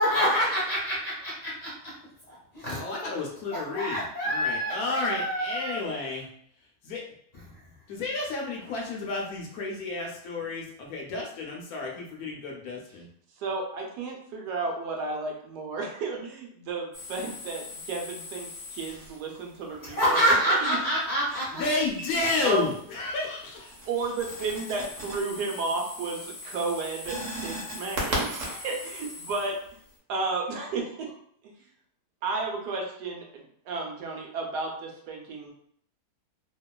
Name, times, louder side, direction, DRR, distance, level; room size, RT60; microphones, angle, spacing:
voice 1, 0.0-1.9 2.3-2.8 3.7-5.8 19.8-21.6, equal, 30° left, -8 dB, 0.8 m, -27 dB
voice 2, 2.8-6.2 6.9-7.0 7.9-13.1 21.5-23.7, left 3 dB, 70° left, -1 dB, 1.0 m, -31 dB
voice 3, 13.4-20.3 20.6-20.7 21.4-21.5 22.4-22.6 23.9-29.5 30.1-31.1 32.2-35.5, right 3 dB, 90° right, 1 dB, 1.2 m, -33 dB
sound 1, 16.9-19.4 21.8-22.9 23.3-29.9, equal, 55° right, 1.0 m, -38 dB
2.8 x 2.3 x 2.2 m, 0.64 s
omnidirectional pair, 1.8 m